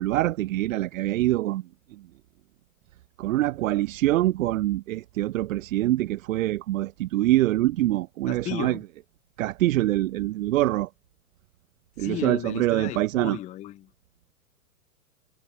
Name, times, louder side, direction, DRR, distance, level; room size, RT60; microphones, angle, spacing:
voice 1, 0.0-1.6 3.2-8.8 9.4-10.9 12.0-13.4, right 15 dB, 60° right, 0.5 m, -24 dB
voice 2, 8.3-8.8 12.0-13.9, left 13 dB, 15° left, 0.6 m, -35 dB
hypercardioid pair, 110°, 45 cm